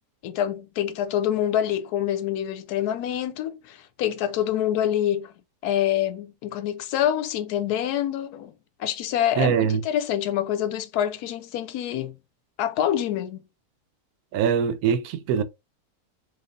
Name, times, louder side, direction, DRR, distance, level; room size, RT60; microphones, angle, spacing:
voice 1, 0.2-5.3 5.6-8.5 8.8-12.2 12.6-13.4, left 11 dB, 85° left, 1.1 m, -26 dB
voice 2, 9.4-9.8 14.3-15.4, right 8 dB, 75° right, 1.0 m, -22 dB
4.0 x 3.1 x 2.6 m
omnidirectional pair, 1.6 m